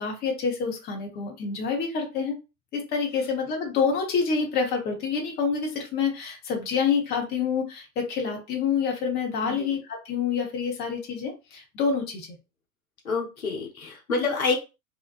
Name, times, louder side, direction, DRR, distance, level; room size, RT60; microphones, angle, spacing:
voice 1, 0.0-2.4 2.7-12.3, left 5 dB, 25° left, 2 dB, 0.7 m, -27 dB
voice 2, 9.4-9.7 13.0-14.5, left 4 dB, 75° left, 1 dB, 0.9 m, -28 dB
2.7 x 2.1 x 2.5 m, 0.29 s
figure-of-eight pair, 85°, 42 cm